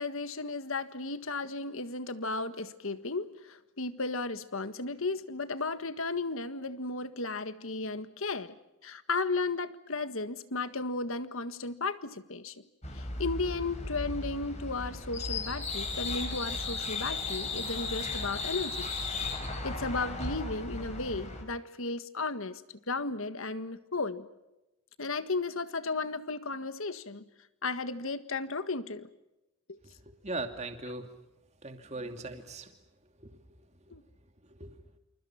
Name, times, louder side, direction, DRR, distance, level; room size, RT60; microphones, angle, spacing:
voice 1, 0.0-8.6 8.8-12.6 12.9-18.9 19.6-24.3 25.0-27.2 27.6-29.1 29.7-29.8 33.9-34.0, left 3 dB, 65° left, 11 dB, 1.7 m, -34 dB
sound 1, 12.8-21.4, left 3 dB, 30° left, 5.8 m, -36 dB
voice 2, 30.1-31.1 31.6-32.7 33.2-33.3 33.9-34.0 34.6-34.8, right 2 dB, 30° right, 6 dB, 2.6 m, -39 dB
28.5 x 28.0 x 5.9 m, 0.95 s
head